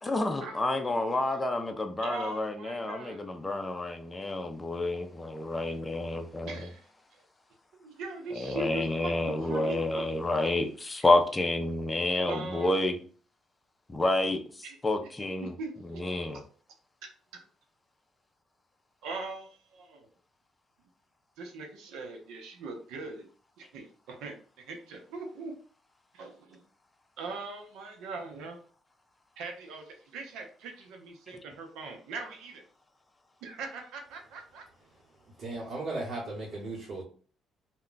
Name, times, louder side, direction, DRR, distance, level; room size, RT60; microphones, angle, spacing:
voice 1, 0.0-6.6 8.4-13.0 13.9-14.4 14.8-15.5 15.9-16.4, left 2 dB, 15° left, 0.5 m, -29 dB
voice 2, 2.0-3.2 6.4-6.8 7.1-7.2 7.7-10.0 12.2-12.8 14.6-14.8 15.4-16.2 19.0-20.1 21.4-23.3 23.6-24.3 24.7-25.5 26.1-26.6 27.2-28.6 29.4-32.6 33.4-34.6, right 3 dB, 90° right, 0.6 m, -41 dB
voice 3, 35.4-37.0, right 2 dB, 45° right, 1.1 m, -36 dB
2.2 x 2.2 x 3.8 m
cardioid pair, 115°, 0 cm